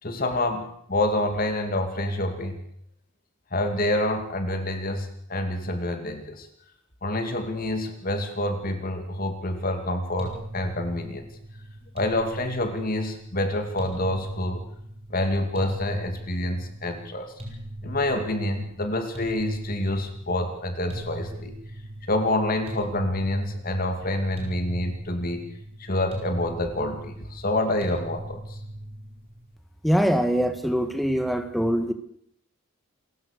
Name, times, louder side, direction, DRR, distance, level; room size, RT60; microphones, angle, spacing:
voice 1, 0.0-2.6 3.5-6.5 7.0-11.3 11.9-14.6 15.1-17.3 17.8-21.5 22.1-25.4 25.8-28.6, left 1 dB, 40° left, 6 dB, 2.6 m, -27 dB
sound 1, 10.2-29.5, right 1 dB, 25° right, 5.3 m, -39 dB
voice 2, 29.8-31.9, equal, ahead, 7 dB, 1.6 m, -23 dB
28.0 x 15.0 x 6.7 m, 0.70 s
head